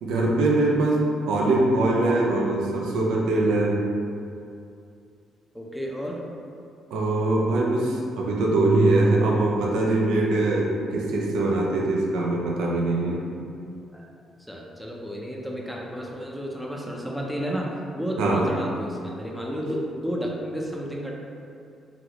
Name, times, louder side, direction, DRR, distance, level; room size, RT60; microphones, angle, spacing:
voice 1, 0.0-3.9 6.9-13.3 18.2-18.5, right 2 dB, 90° right, -2 dB, 0.4 m, -22 dB
voice 2, 5.5-6.2 13.9-14.1 14.5-21.1, equal, ahead, -2 dB, 0.5 m, -31 dB
3.9 x 2.0 x 2.9 m, 2.5 s
cardioid pair, 90°, 0 cm